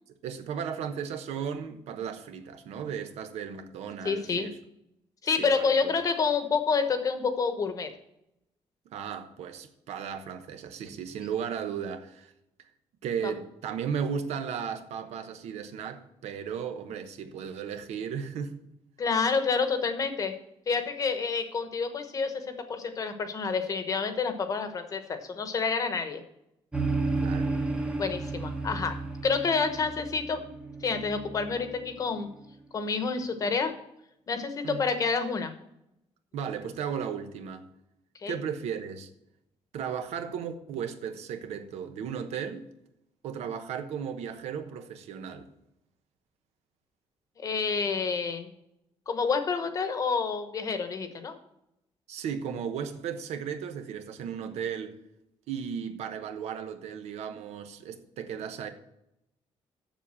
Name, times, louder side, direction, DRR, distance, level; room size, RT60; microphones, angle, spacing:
voice 1, 0.2-4.5 5.4-5.9 8.9-12.3 13.0-18.6 27.2-27.5 34.6-34.9 36.3-37.7 38.3-39.1 39.7-42.7 43.2-45.5 52.1-55.0 55.5-58.7, right 7 dB, 85° right, 1.1 m, -35 dB
voice 2, 4.0-4.5 5.2-7.9 13.2-13.3 19.0-20.3 20.7-26.2 28.0-28.9 29.2-30.4 30.8-32.3 32.7-33.7 34.3-35.5 38.2-38.4 47.4-48.5 49.1-51.3, left 5 dB, 30° left, 1.0 m, -28 dB
sound 1, 26.7-32.3, right 3 dB, 10° right, 0.9 m, -33 dB
7.4 x 7.0 x 7.4 m
cardioid pair, 175°, 11 cm